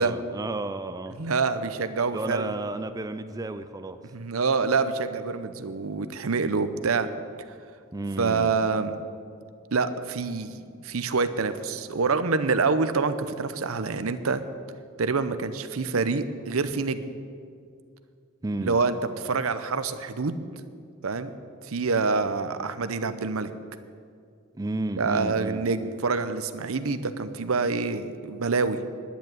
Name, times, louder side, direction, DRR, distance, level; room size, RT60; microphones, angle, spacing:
voice 1, 0.0-1.2 2.1-4.0 7.9-8.6 18.4-18.8 24.6-25.6, right 2 dB, 15° right, 9 dB, 0.4 m, -32 dB
voice 2, 1.2-2.5 4.1-7.1 8.2-8.9 9.7-14.4 15.0-17.0 18.6-20.4 21.0-21.4 21.6-23.5 25.0-28.8, right 4 dB, 85° right, 11 dB, 0.7 m, -26 dB
10.0 x 9.4 x 9.0 m, 2.2 s
head